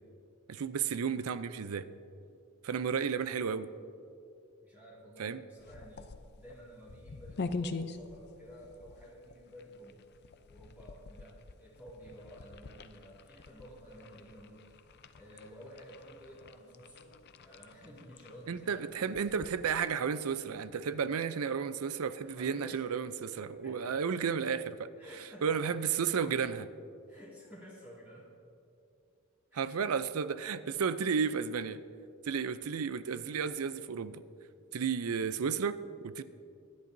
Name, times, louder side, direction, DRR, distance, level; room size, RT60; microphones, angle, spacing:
voice 1, 0.5-1.9 2.6-3.7 5.2-5.4 18.5-24.9 25.4-26.7 29.5-31.8 32.2-34.2 34.7-36.2, right 6 dB, 90° right, 13 dB, 0.5 m, -33 dB
voice 2, 4.6-10.1 10.5-14.8 15.1-17.1 17.4-19.2 22.3-24.0 25.0-25.8 27.1-28.3 29.5-29.7, equal, 10° right, -7 dB, 2.3 m, -52 dB
sound 1, 5.6-20.1, left 3 dB, 50° left, 0.5 m, -45 dB
24.5 x 10.5 x 2.7 m, 2.6 s
head